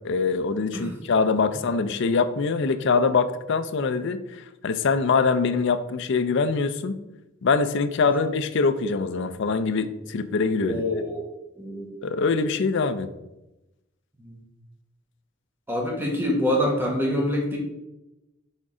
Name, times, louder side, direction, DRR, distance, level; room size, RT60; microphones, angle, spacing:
voice 1, 0.0-7.0 7.4-10.8 12.0-13.1, left 4 dB, 60° left, 11 dB, 0.4 m, -23 dB
voice 2, 10.6-11.2 11.6-11.9 14.2-14.4 15.7-17.6, left 1 dB, 10° right, -1 dB, 1.3 m, -25 dB
6.3 x 3.7 x 4.9 m, 0.95 s
head